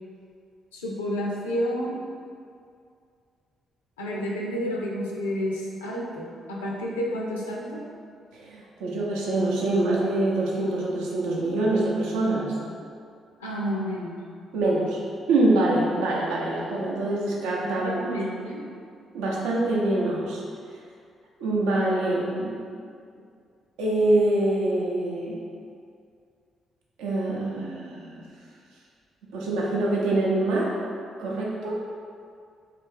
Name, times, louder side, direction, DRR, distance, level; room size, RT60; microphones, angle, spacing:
voice 1, 0.7-2.0 4.0-7.8 13.4-14.1 17.7-18.6, equal, 80° left, -2 dB, 0.4 m, -30 dB
voice 2, 8.4-12.6 14.5-15.0 15.3-18.0 19.1-20.4 21.4-22.6 23.8-25.4 27.0-28.2 29.3-30.7 31.2-31.8, right 2 dB, 70° right, -4 dB, 0.6 m, -25 dB
3.3 x 2.8 x 3.3 m, 2.2 s
figure-of-eight pair, 40°, 0 cm